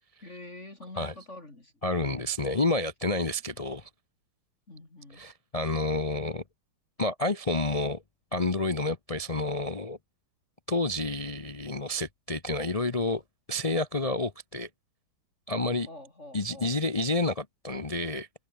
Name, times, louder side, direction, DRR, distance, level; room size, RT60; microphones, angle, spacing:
voice 1, 0.2-2.3 4.7-5.2 15.5-16.8, left 2 dB, 30° left, 4.2 m, -46 dB
voice 2, 1.8-3.9 5.1-6.4 7.0-8.0 8.3-10.0 10.7-13.2 13.5-14.7 15.5-15.9 16.3-18.3, left 2 dB, 55° left, 0.4 m, -29 dB
omnidirectional pair, 2.3 m